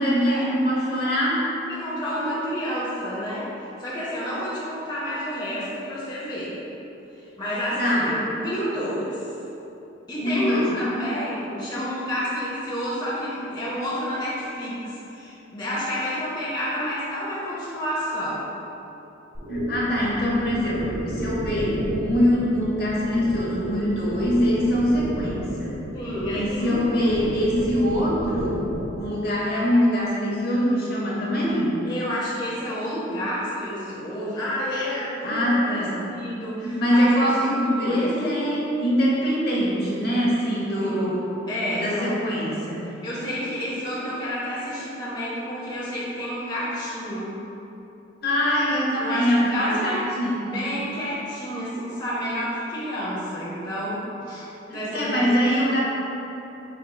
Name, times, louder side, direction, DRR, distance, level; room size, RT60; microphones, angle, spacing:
voice 1, 0.0-1.4 7.8-8.1 10.2-10.9 19.5-25.8 26.3-31.8 35.2-36.1 36.6-41.3 41.7-42.9 48.2-50.7 54.7-55.8, equal, 50° left, -5 dB, 0.8 m, -23 dB
voice 2, 1.5-6.5 7.2-9.2 10.1-18.5 25.9-26.9 27.6-27.7 31.8-37.3 37.6-38.1 40.8-41.2 41.5-42.2 43.0-47.3 49.0-50.0 50.5-55.4, equal, 20° left, -9 dB, 0.7 m, -30 dB
sound 1, 19.3-29.0, right 1 dB, 45° right, 0.8 m, -33 dB
4.7 x 4.4 x 2.3 m, 3.0 s
head